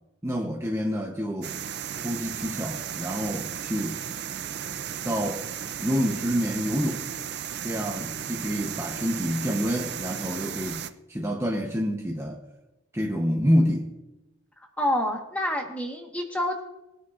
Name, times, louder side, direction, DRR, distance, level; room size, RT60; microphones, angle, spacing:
voice 1, 0.2-1.6 2.0-4.0 5.0-5.5 5.8-7.1 7.6-12.4 12.9-13.9, equal, 15° right, 0.8 m, -27 dB
sound 1, 1.4-10.9, right 9 dB, 55° right, 0.4 m, -35 dB
voice 2, 14.8-16.6, left 1 dB, 5° left, 1.3 m, -27 dB
21.0 x 9.5 x 2.5 m
head